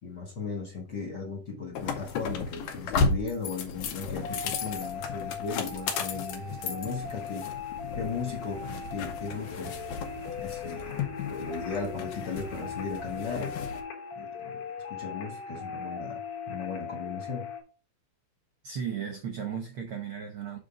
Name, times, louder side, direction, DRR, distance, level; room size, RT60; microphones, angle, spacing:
voice 1, 0.0-7.5 7.9-9.8 10.4-13.6 14.1-14.6 14.9-16.2 16.5-17.5, left 4 dB, 45° left, 1.6 m, -37 dB
sound 1, 1.8-13.8, left 4 dB, 85° left, 2.5 m, -34 dB
sound 2, 4.2-17.6, left 6 dB, 65° left, 2.4 m, -39 dB
voice 2, 18.6-20.6, right 7 dB, 70° right, 1.3 m, -35 dB
6.8 x 3.8 x 4.8 m
omnidirectional pair, 3.6 m